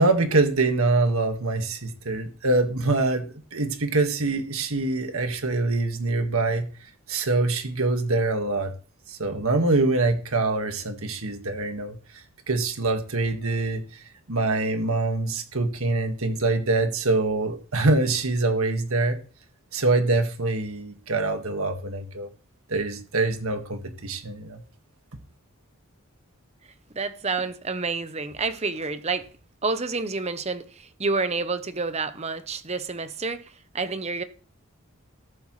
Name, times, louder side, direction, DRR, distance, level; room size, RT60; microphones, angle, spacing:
voice 1, 0.0-6.7 7.1-8.7 9.1-12.0 12.5-19.2 19.7-22.3 22.7-24.6, right 2 dB, 70° right, 1.7 m, -24 dB
voice 2, 26.9-29.3 29.6-34.2, right 4 dB, 30° right, 0.8 m, -29 dB
14.0 x 11.5 x 3.2 m
head